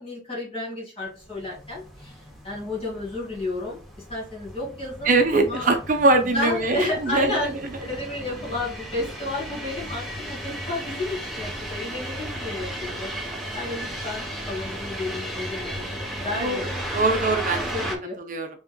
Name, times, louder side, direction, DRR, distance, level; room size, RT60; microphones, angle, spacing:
voice 1, 0.0-3.8 4.1-5.7 6.2-17.0 17.5-18.2, left 2 dB, 30° left, -5 dB, 2.1 m, -32 dB
sound 1, 1.2-18.0, right 1 dB, ahead, 0.7 m, -35 dB
voice 2, 5.0-7.4 16.3-17.7 18.3-18.5, right 2 dB, 45° right, 6 dB, 0.5 m, -22 dB
5.3 x 3.5 x 2.2 m, 0.37 s
head